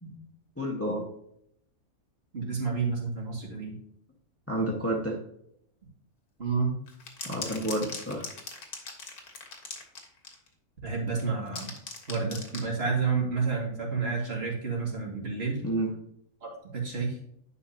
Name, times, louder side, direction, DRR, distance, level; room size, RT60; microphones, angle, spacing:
voice 1, 0.6-1.0 4.5-5.2 7.2-8.3 15.6-15.9, right 1 dB, 10° left, -1 dB, 1.5 m, -30 dB
voice 2, 2.3-3.8 6.4-6.7 10.8-11.7 12.1-15.6 16.4-17.2, right 4 dB, 45° right, -1 dB, 2.4 m, -30 dB
sound 1, 6.9-10.5 11.2-12.7, left 4 dB, 85° left, 2.0 m, -40 dB
10.5 x 5.6 x 2.8 m, 0.72 s
omnidirectional pair, 1.6 m